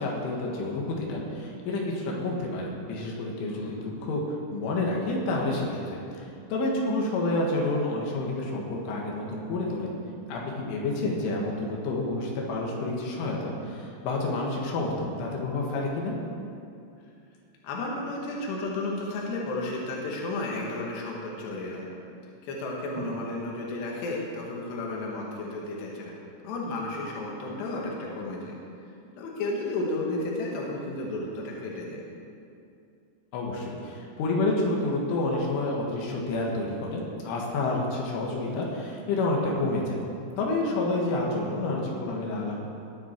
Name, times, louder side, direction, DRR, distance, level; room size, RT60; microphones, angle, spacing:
voice 1, 0.0-4.2 4.5-9.9 10.3-16.1 23.0-23.1 33.3-40.0 40.4-42.6, left 2 dB, 85° left, -2 dB, 4.1 m, -29 dB
voice 2, 3.5-3.8 17.6-21.9 22.4-26.2 26.4-28.6 29.2-32.0, left 2 dB, 65° left, -2 dB, 3.7 m, -33 dB
19.0 x 9.4 x 4.6 m, 2.5 s
omnidirectional pair, 5.5 m